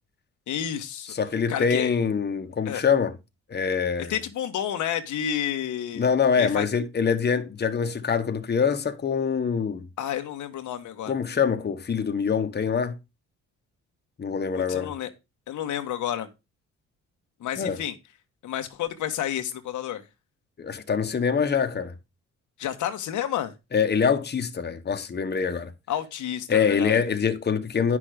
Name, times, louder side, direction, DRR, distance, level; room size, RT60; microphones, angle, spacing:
voice 1, 0.5-1.1 1.5-1.9 2.6-2.8 4.1-6.1 6.4-6.7 10.0-11.2 14.5-15.1 15.5-16.3 17.4-17.9 18.4-20.0 22.6-23.5 25.9-27.0, left 10 dB, 75° left, 1.4 m, -30 dB
voice 2, 1.1-3.1 3.5-4.1 5.9-9.9 11.1-12.9 14.2-14.9 17.6-17.8 20.6-21.9 23.7-25.7 26.5-28.0, left 6 dB, 35° left, 1.3 m, -24 dB
9.8 x 6.2 x 5.0 m
cardioid pair, 90°, 30 cm